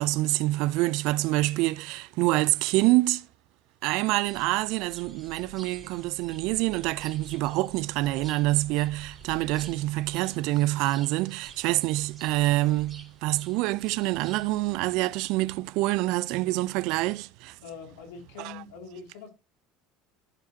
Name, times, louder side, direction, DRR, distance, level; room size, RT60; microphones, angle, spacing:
voice 1, 0.0-3.3 3.8-17.6 18.4-18.5, right 19 dB, 65° right, 0.3 m, -26 dB
sound 1, 4.2-14.8, right 2 dB, 25° right, 2.5 m, -51 dB
voice 2, 17.6-19.3, left 5 dB, 85° left, 2.4 m, -43 dB
14.0 x 4.9 x 2.7 m
supercardioid pair, 120°, 0 cm